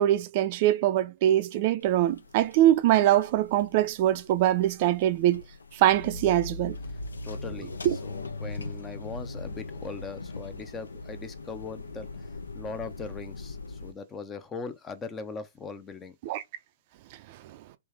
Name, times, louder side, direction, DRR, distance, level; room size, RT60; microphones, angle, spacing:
voice 1, 0.0-5.4 5.7-6.8 7.8-8.0 16.2-16.4, right 13 dB, 45° right, 0.4 m, -23 dB
sound 1, 1.8-13.9, left 3 dB, 80° left, 0.5 m, -40 dB
voice 2, 7.2-7.7 8.0-12.3 12.5-16.2, left 4 dB, 20° left, 0.6 m, -40 dB
3.2 x 3.1 x 3.3 m
figure-of-eight pair, 115°, 0 cm